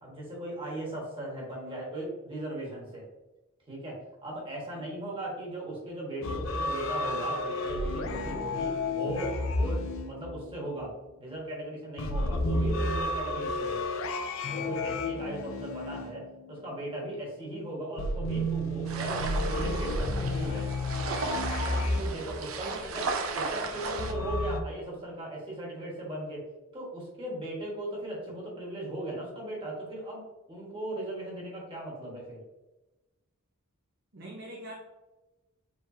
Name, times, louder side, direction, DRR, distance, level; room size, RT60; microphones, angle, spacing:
voice 1, 0.0-3.1 3.7-10.9 11.2-13.8 14.4-20.7 21.6-23.0 23.3-26.5 26.7-30.2 30.5-32.4, right 1 dB, 25° right, -3 dB, 1.4 m, -38 dB
sound 1, 6.2-10.8 12.0-16.8 18.0-22.6 24.0-24.6, left 1 dB, 65° left, 0.5 m, -31 dB
sound 2, 18.9-24.1, right 4 dB, 75° right, 0.6 m, -35 dB
voice 2, 22.6-23.1 23.7-23.8 34.1-34.7, right 1 dB, 55° right, -4 dB, 0.9 m, -46 dB
4.5 x 3.8 x 2.7 m, 1.1 s
head